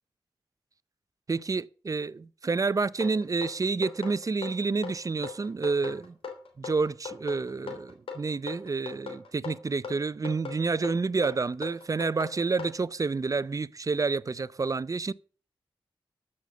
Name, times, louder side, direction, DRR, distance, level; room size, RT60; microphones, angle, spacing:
voice 1, 1.3-6.1 6.6-15.1, right 4 dB, 40° right, 0.5 m, -29 dB
sound 1, 3.0-12.8, left 5 dB, 80° left, 3.2 m, -39 dB
13.5 x 6.5 x 6.5 m
cardioid pair, 55°, 9 cm